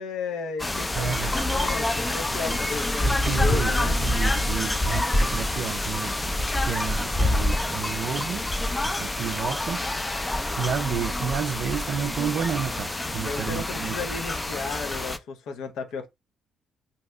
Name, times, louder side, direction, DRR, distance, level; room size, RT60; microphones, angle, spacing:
voice 1, 0.0-4.0 13.2-16.1, left 4 dB, 80° left, 0.6 m, -34 dB
sound 1, 0.6-15.2, left 1 dB, 15° left, 0.4 m, -27 dB
voice 2, 0.9-1.4 2.5-2.6 3.0-8.5 8.8-9.9 10.2-14.0, right 7 dB, 70° right, 0.3 m, -31 dB
2.7 x 2.2 x 3.5 m
cardioid pair, 90°, 0 cm